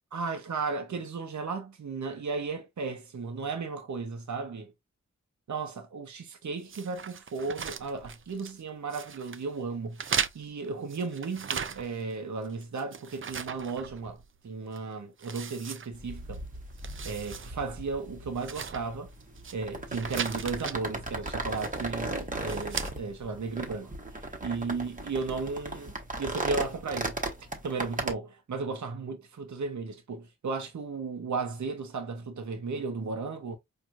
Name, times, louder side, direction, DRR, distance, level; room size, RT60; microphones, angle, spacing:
voice 1, 0.1-4.7 5.5-10.0 10.3-16.4 17.0-19.1 19.5-25.9 26.2-27.1 27.6-33.6, right 4 dB, 65° right, 0.8 m, -35 dB
sound 1, 6.7-8.6 8.9-9.4 9.9-12.1 12.4-14.4 14.7-14.8 15.2-16.4 16.7-17.5 17.8-17.9 18.4-19.5 19.9-20.8 21.5-21.9 22.4-22.9, right 6 dB, 40° right, 0.4 m, -37 dB
sound 2, 15.9-28.1, right 2 dB, 25° right, 1.1 m, -37 dB
4.6 x 2.5 x 2.5 m
cardioid pair, 45°, 31 cm